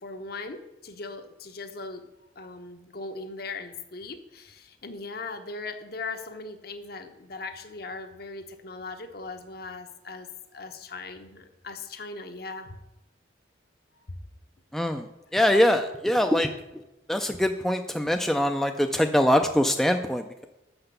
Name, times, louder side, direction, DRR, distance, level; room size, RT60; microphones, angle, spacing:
voice 1, 0.0-2.0 2.4-10.3 10.5-12.8, left 3 dB, 55° left, 7 dB, 0.9 m, -39 dB
voice 2, 14.7-15.1 15.3-16.5 17.1-20.4, left 1 dB, ahead, 5 dB, 0.3 m, -23 dB
6.7 x 5.9 x 6.7 m, 0.93 s
head